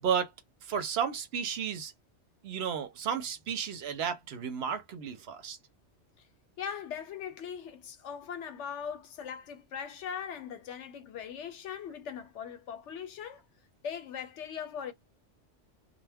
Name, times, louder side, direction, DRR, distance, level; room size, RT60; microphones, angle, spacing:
voice 1, 0.0-0.3 0.6-1.9 2.4-5.6, right 7 dB, 65° right, 0.8 m, -33 dB
voice 2, 6.6-13.4 13.8-14.9, left 7 dB, 75° left, 1.0 m, -40 dB
2.2 x 2.2 x 3.3 m
omnidirectional pair, 1.2 m